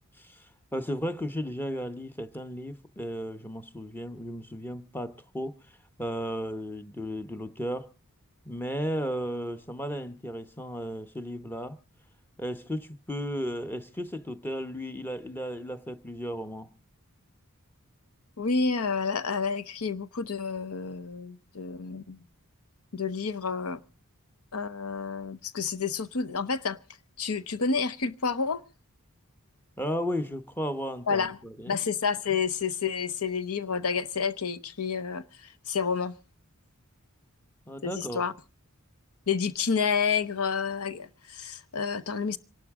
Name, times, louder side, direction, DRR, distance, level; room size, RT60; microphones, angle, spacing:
voice 1, 0.2-5.5 6.0-7.9 8.4-11.8 12.4-16.7 29.8-31.8 37.7-38.2, equal, 10° left, 0.9 m, -34 dB
voice 2, 18.4-22.2 22.9-23.8 24.5-26.8 27.2-28.6 31.1-31.4 31.7-36.1 37.8-38.3 39.3-42.4, left 5 dB, 75° left, 0.9 m, -29 dB
27.0 x 12.0 x 3.6 m
head